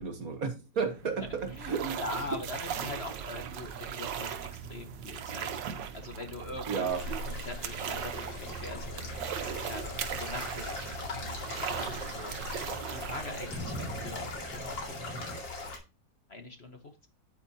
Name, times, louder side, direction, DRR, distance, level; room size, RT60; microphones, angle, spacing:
voice 1, 0.0-1.9 6.7-7.0, right 5 dB, 50° right, 1.7 m, -32 dB
sound 1, 0.9-14.6, right 8 dB, 75° right, 1.6 m, -39 dB
voice 2, 1.5-5.5 5.9-9.3 9.7-12.5 12.9-15.4 16.3-17.1, left 2 dB, 35° left, 1.5 m, -43 dB
sound 2, 5.9-15.4, right 1 dB, 10° right, 2.4 m, -47 dB
sound 3, 6.9-15.8, left 2 dB, 85° left, 3.1 m, -40 dB
9.1 x 8.8 x 2.8 m
omnidirectional pair, 2.0 m